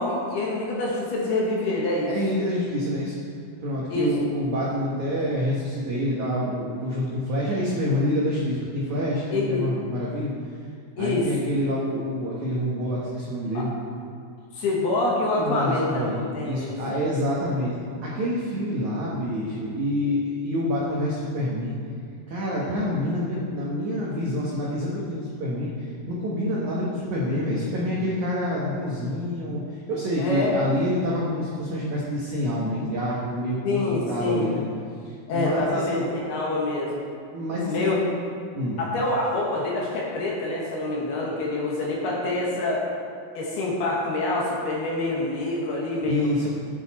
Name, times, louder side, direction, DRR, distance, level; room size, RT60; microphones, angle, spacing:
voice 1, 0.0-2.1 3.9-4.1 9.3-9.7 11.0-11.3 13.5-13.7 14.5-16.8 30.2-30.5 33.6-34.5 35.3-37.0 37.7-38.0 38.8-42.9 43.3-46.5, left 2 dB, 65° left, -4 dB, 3.1 m, -26 dB
voice 2, 2.1-3.2 3.6-10.3 11.0-13.7 15.4-17.7 18.0-21.7 22.3-34.6 35.0-36.0 37.3-37.9 38.5-38.8 46.1-46.5, equal, 80° right, -6 dB, 1.7 m, -27 dB
13.0 x 9.7 x 4.3 m, 2.3 s
omnidirectional pair, 5.8 m